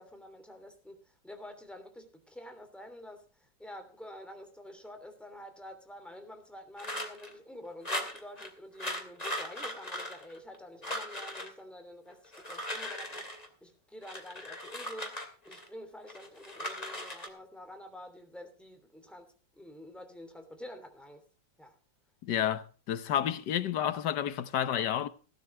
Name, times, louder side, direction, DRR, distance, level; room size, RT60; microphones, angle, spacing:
voice 1, 0.0-21.2 21.6-21.7, equal, ahead, 2.9 m, -48 dB
sound 1, 6.8-7.3 7.8-8.5 8.8-10.6 10.8-11.5 12.2-13.5 14.0-15.7 16.1-17.3, left 1 dB, 20° left, 2.6 m, -38 dB
voice 2, 22.2-25.1, left 10 dB, 75° left, 1.5 m, -30 dB
17.0 x 12.5 x 3.3 m
omnidirectional pair, 1.9 m